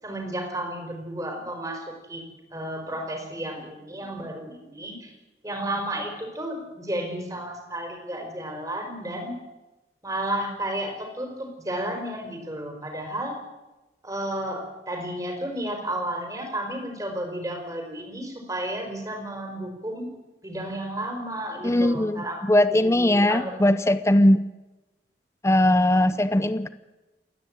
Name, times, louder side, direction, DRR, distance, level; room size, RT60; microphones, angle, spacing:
voice 1, 0.0-5.1 5.4-9.3 10.0-13.4 14.0-20.1 20.4-24.1, right 1 dB, 20° right, 3 dB, 4.6 m, -32 dB
voice 2, 21.6-24.5 25.4-26.7, left 1 dB, 15° left, 12 dB, 0.7 m, -20 dB
29.0 x 10.5 x 8.7 m, 1.0 s
head